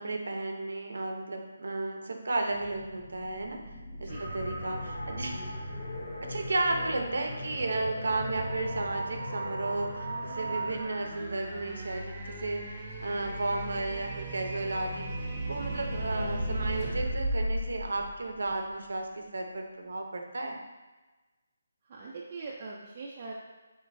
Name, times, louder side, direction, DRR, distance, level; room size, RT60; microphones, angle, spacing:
voice 1, 0.0-3.6 4.0-5.5 6.3-12.7 13.0-20.6, right 2 dB, 75° right, 3 dB, 0.7 m, -33 dB
sound 1, 2.5-18.7, right 1 dB, 15° right, 1.0 m, -38 dB
voice 2, 3.9-4.2 21.8-23.3, right 4 dB, 35° right, -4 dB, 0.5 m, -42 dB
sound 2, 4.1-10.8, equal, 50° left, 1.1 m, -38 dB
5.3 x 3.8 x 2.6 m, 1.2 s
figure-of-eight pair, 160°, 0 cm